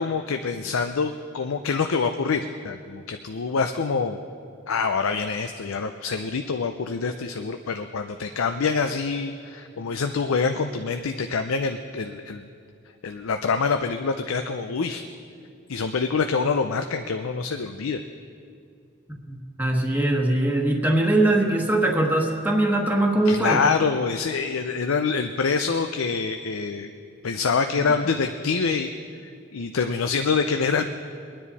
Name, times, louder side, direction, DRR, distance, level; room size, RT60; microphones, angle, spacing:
voice 1, 0.0-4.2 4.7-12.4 13.0-15.0 15.7-18.0 23.3-26.9 27.2-28.9 29.5-30.9, left 5 dB, 75° left, 7 dB, 0.5 m, -25 dB
voice 2, 19.3-23.6, right 1 dB, 10° right, 0 dB, 1.3 m, -21 dB
23.5 x 9.9 x 4.1 m, 2.4 s
head